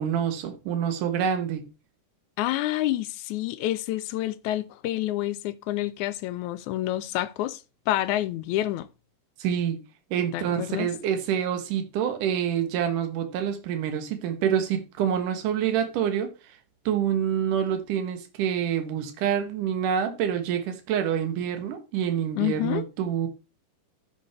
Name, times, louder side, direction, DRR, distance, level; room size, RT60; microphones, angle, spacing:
voice 1, 0.0-1.6 9.4-9.8 10.1-16.3 16.9-23.3, right 8 dB, 80° right, 2.8 m, -27 dB
voice 2, 2.4-7.6 7.9-8.9 10.3-10.9 22.4-22.9, left 14 dB, 80° left, 1.9 m, -28 dB
13.5 x 5.8 x 3.3 m
omnidirectional pair, 3.7 m